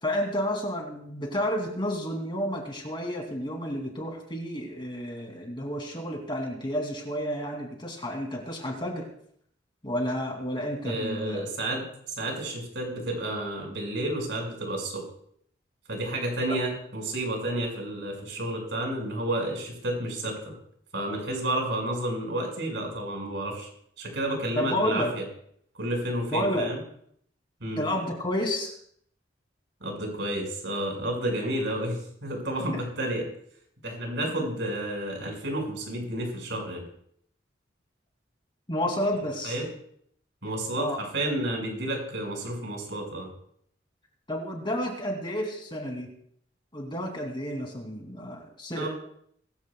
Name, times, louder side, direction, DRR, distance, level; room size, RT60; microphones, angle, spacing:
voice 1, 0.0-9.1 9.8-11.4 24.5-25.1 26.3-26.7 27.8-28.7 38.7-39.6 40.8-41.0 44.3-46.1 46.7-48.9, equal, 25° left, 1 dB, 2.8 m, -30 dB
voice 2, 10.8-15.0 15.9-20.5 20.9-23.7 24.0-25.2 25.7-26.8 27.6-27.8 29.8-33.3 33.8-36.8 39.4-39.7 40.4-43.3 48.8-48.9, right 1 dB, 70° right, 0 dB, 5.7 m, -31 dB
21.0 x 15.0 x 2.3 m, 0.67 s
head